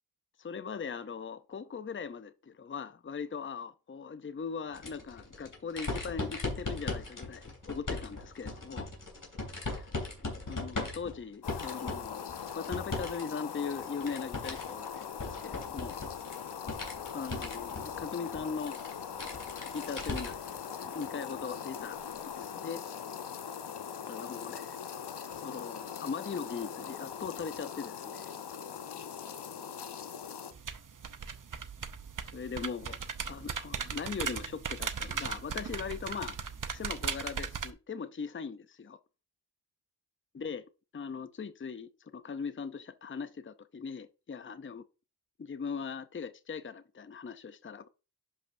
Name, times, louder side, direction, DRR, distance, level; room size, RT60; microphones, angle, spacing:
voice 1, 0.4-8.9 10.2-16.0 17.1-18.8 19.7-20.4 20.8-22.1 22.3-22.8 24.1-24.8 25.4-28.3 32.3-33.0 33.3-36.4 36.7-39.0 40.3-40.6 40.9-44.8 45.4-47.9, left 5 dB, 30° left, 0.6 m, -40 dB
sound 1, 4.7-13.2 13.5-20.5 20.9-21.0 22.2-22.3, left 2 dB, 50° left, 3.1 m, -39 dB
sound 2, 11.4-30.5, left 7 dB, 75° left, 0.8 m, -41 dB
sound 3, 30.5-37.7, right 6 dB, 50° right, 0.8 m, -38 dB
11.0 x 5.3 x 2.6 m
cardioid pair, 50°, 41 cm